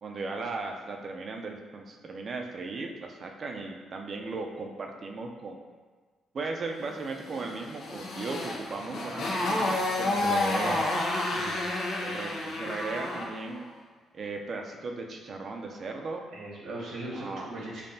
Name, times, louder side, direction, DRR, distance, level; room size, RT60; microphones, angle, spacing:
voice 1, 0.0-5.6 6.3-10.9 12.0-13.7 14.1-16.2 17.1-17.5, right 3 dB, 45° right, 2 dB, 0.5 m, -37 dB
Motorcycle, 7.3-13.4, left 2 dB, 70° left, 0.7 m, -30 dB
voice 2, 10.1-10.8 11.3-11.7 16.3-17.8, right 2 dB, 80° right, -5 dB, 1.0 m, -38 dB
5.2 x 2.4 x 2.7 m, 1.4 s
cardioid pair, 90°, 0 cm